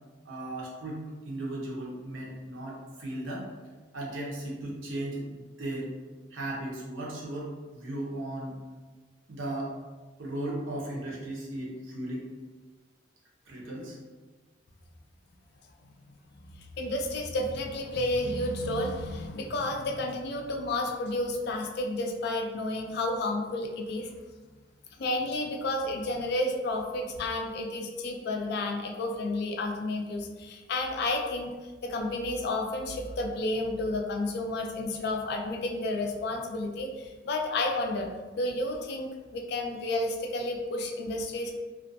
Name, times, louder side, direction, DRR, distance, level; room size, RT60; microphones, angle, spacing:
voice 1, 0.2-3.5 3.9-5.9 6.3-8.6 9.3-9.8 10.2-12.3 13.5-14.0, right 1 dB, 80° right, -3 dB, 0.7 m, -36 dB
voice 2, 16.8-24.1 25.0-31.5 31.8-38.1 38.3-41.5, left 2 dB, 55° left, 2 dB, 0.3 m, -31 dB
2.4 x 2.2 x 2.6 m, 1.3 s
head